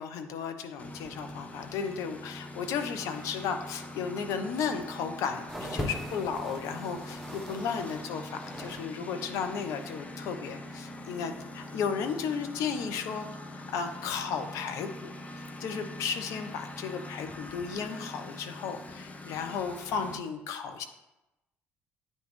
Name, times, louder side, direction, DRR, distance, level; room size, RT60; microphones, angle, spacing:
voice 1, 0.0-13.3 13.5-15.1 15.6-20.8, left 6 dB, 65° left, 7 dB, 0.6 m, -34 dB
Engine, 0.8-20.2, left 1 dB, 25° left, 0.7 m, -43 dB
sound 1, 5.5-8.9 9.2-10.1 10.8-10.9, equal, ahead, 0.9 m, -41 dB
9.1 x 3.2 x 3.1 m, 0.97 s
hypercardioid pair, 50°, 6 cm